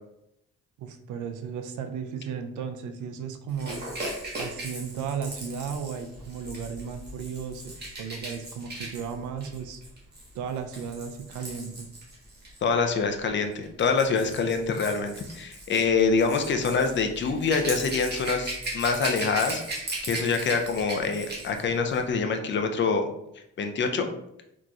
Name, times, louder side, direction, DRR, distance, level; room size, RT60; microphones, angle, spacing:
voice 1, 0.8-3.9 4.4-9.8 10.3-11.9, right 6 dB, 80° right, 7 dB, 0.5 m, -35 dB
Rattle / Rattle (instrument), 3.6-12.6 13.5-21.6 21.9-22.1, right 2 dB, 35° right, 1.2 m, -38 dB
voice 2, 12.6-19.6 20.0-23.1 23.6-24.1, left 5 dB, 40° left, 6 dB, 0.5 m, -25 dB
3.8 x 3.0 x 2.3 m, 0.81 s
cardioid pair, 90°, 30 cm